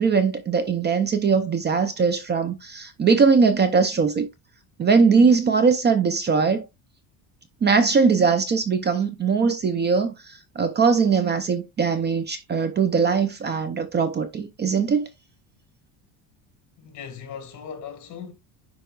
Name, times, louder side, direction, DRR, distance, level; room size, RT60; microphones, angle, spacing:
voice 1, 0.0-4.3 4.8-6.6 7.6-15.1, right 5 dB, 25° right, 0.6 m, -21 dB
voice 2, 16.8-18.3, left 7 dB, 45° left, 1.8 m, -38 dB
10.0 x 4.1 x 2.4 m
cardioid pair, 140°, 40 cm